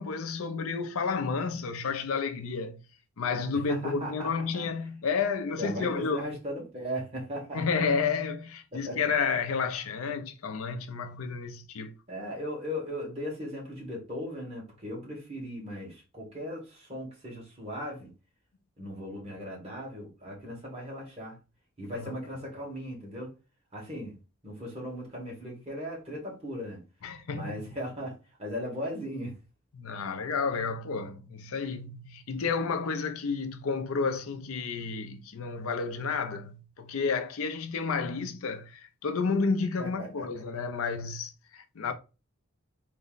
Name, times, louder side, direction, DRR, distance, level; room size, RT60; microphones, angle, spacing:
voice 1, 0.0-2.8 3.2-6.3 7.5-11.9 22.0-22.1 27.0-27.6 29.7-41.9, left 5 dB, 75° left, 0.5 m, -31 dB
voice 2, 3.7-4.7 5.6-7.8 8.8-9.1 12.1-18.1 18.8-21.4 21.8-23.3 23.7-24.2 24.4-26.8 27.3-29.4 39.8-40.3, equal, 30° right, 1.6 m, -38 dB
4.0 x 2.2 x 3.8 m
head